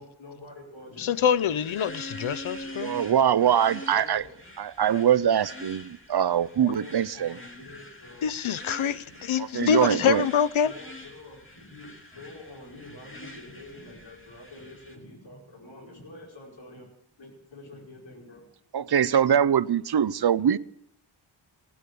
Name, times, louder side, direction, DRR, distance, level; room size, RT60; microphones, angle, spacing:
voice 1, 0.0-1.6 2.6-2.7 3.9-4.3 6.6-8.3 9.0-9.1 10.6-16.9 17.2-18.4, left 2 dB, 70° left, 5.3 m, -46 dB
voice 2, 1.0-2.9 8.2-10.7, left 8 dB, 90° left, 0.8 m, -25 dB
sound 1, 1.1-15.0, left 1 dB, 25° left, 2.7 m, -45 dB
voice 3, 2.8-4.2 4.6-7.4 9.4-10.3 18.7-20.6, right 9 dB, 55° right, 0.7 m, -23 dB
17.5 x 9.7 x 8.4 m
wide cardioid pair, 85°, 46 cm